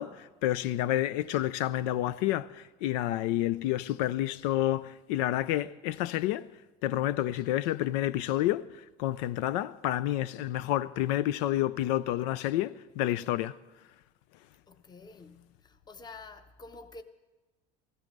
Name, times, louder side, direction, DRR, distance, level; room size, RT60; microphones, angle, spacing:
voice 1, 0.0-6.5 6.8-13.6, left 13 dB, 80° left, 0.5 m, -29 dB
voice 2, 14.7-17.0, left 3 dB, 20° left, 0.8 m, -49 dB
14.5 x 14.0 x 5.3 m
supercardioid pair, 100°, 21 cm